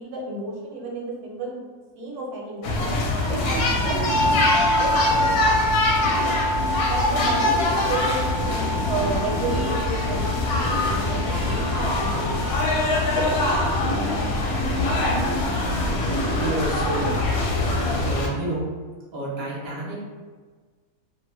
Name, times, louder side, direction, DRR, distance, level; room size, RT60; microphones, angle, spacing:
voice 1, 0.0-1.6 1.9-2.9 3.3-4.9 6.9-12.4 13.1-13.7, right 2 dB, 75° right, -2 dB, 1.1 m, -32 dB
sound 1, 2.6-18.3, left 2 dB, 75° left, 1.1 m, -23 dB
sound 2, 4.1-13.8, equal, 50° left, 0.5 m, -28 dB
voice 2, 16.3-17.2 17.7-18.6 19.1-20.0, right 2 dB, 35° right, -7 dB, 0.4 m, -30 dB
2.7 x 2.1 x 2.9 m, 1.5 s
omnidirectional pair, 1.7 m